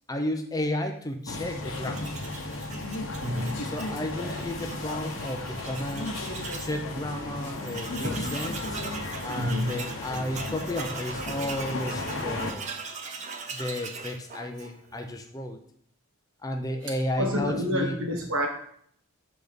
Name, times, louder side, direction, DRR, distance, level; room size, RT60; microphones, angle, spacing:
voice 1, 0.1-2.2 3.6-6.2 6.6-8.8 9.2-12.7 13.5-15.6 16.4-18.0, left 1 dB, 15° left, 5 dB, 0.5 m, -33 dB
sound 1, 1.3-12.5, left 2 dB, 65° left, 1.0 m, -35 dB
Tools, 1.6-6.8 7.1-7.2 7.4-15.0, right 5 dB, 35° right, 0.6 m, -41 dB
voice 2, 3.2-3.7 8.0-8.3 9.3-9.7 16.8-18.5, equal, 85° right, 1 dB, 1.5 m, -29 dB
6.0 x 4.0 x 5.1 m, 0.64 s
head